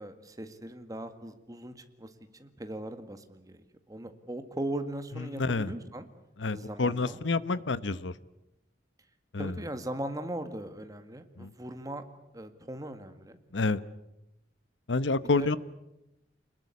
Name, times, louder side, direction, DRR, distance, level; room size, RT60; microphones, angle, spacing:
voice 1, 0.0-6.1 6.5-7.2 7.5-7.6 9.4-12.0 12.3-13.4 15.3-15.5, right 1 dB, 20° right, 1.8 m, -39 dB
voice 2, 5.1-5.7 6.4-8.1 9.3-9.6 11.4-11.5 13.5-13.8 14.9-15.6, left 3 dB, 90° left, 0.9 m, -28 dB
26.0 x 21.0 x 8.5 m
head